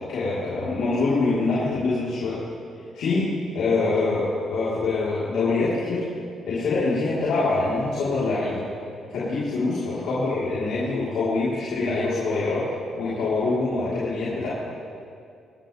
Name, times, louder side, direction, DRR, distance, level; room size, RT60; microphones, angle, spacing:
voice 1, 0.1-2.4 2.9-3.3 3.5-6.1 6.5-8.6 9.1-12.6 13.0-14.5, left 3 dB, 80° left, -10 dB, 4.1 m, -24 dB
25.0 x 13.0 x 3.5 m, 2.4 s
cardioid pair, 90°, 0 cm